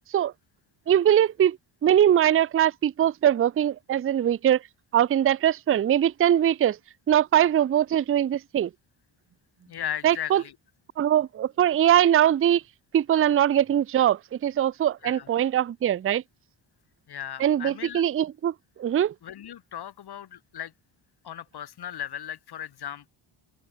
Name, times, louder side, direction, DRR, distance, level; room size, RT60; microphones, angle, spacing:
voice 1, 0.9-1.6 1.8-4.6 4.9-6.8 7.1-8.7 10.0-10.4 11.0-12.6 12.9-16.2 17.4-18.5 18.8-19.1, right 10 dB, 30° right, 0.4 m, -22 dB
voice 2, 9.7-10.5 15.0-15.3 17.1-18.0 19.2-20.7 21.2-23.1, left 10 dB, 50° left, 1.1 m, -36 dB
cardioid pair, 115°, 49 cm